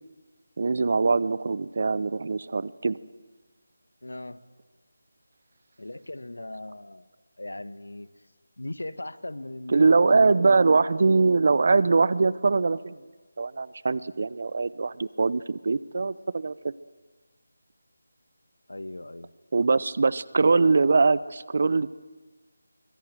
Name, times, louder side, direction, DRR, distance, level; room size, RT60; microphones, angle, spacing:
voice 1, 0.6-3.0 9.7-13.0 13.4-16.5 19.5-21.9, right 4 dB, 45° right, 18 dB, 0.8 m, -22 dB
voice 2, 4.0-4.4 5.8-7.0 7.4-8.1 8.6-10.6 18.7-19.3, left 1 dB, 75° left, 13 dB, 1.4 m, -38 dB
24.0 x 21.0 x 9.2 m, 1.3 s
figure-of-eight pair, 160°, 0 cm